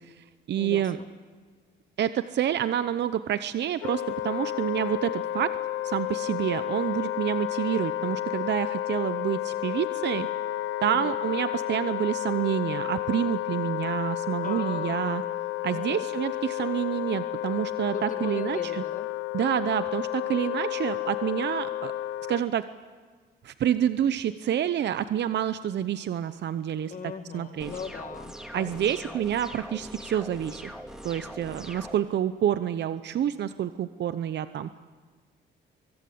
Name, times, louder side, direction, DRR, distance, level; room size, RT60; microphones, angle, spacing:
voice 1, 0.0-1.0 2.0-5.5 5.8-10.3 10.8-15.2 15.6-18.8 19.3-21.9 22.3-22.6 23.4-26.9 27.3-27.7 28.5-30.7 31.0-34.7, right 10 dB, 60° right, 12 dB, 0.8 m, -28 dB
voice 2, 0.5-1.1 10.9-11.2 14.4-15.1 15.7-16.0 17.9-19.1 26.9-29.2, left 6 dB, 40° left, 8 dB, 1.9 m, -39 dB
Wind instrument woodwind instrument, 3.8-22.4, left 13 dB, 80° left, 0.7 m, -31 dB
sound 1, 27.6-32.0, equal, 5° right, 2.3 m, -42 dB
24.0 x 23.5 x 8.6 m, 1.5 s
cardioid pair, 90°, 20 cm